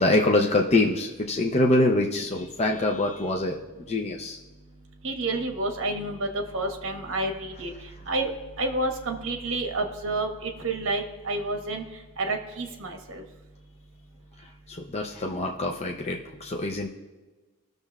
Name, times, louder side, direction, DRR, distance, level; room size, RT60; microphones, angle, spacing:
voice 1, 0.0-3.6 3.9-4.4 14.7-16.9, left 2 dB, 30° left, 1 dB, 0.5 m, -24 dB
voice 2, 5.0-7.7 8.1-8.3 8.6-11.8 12.2-13.2, right 2 dB, 60° right, 4 dB, 1.3 m, -29 dB
20.0 x 6.7 x 2.4 m, 1.2 s
head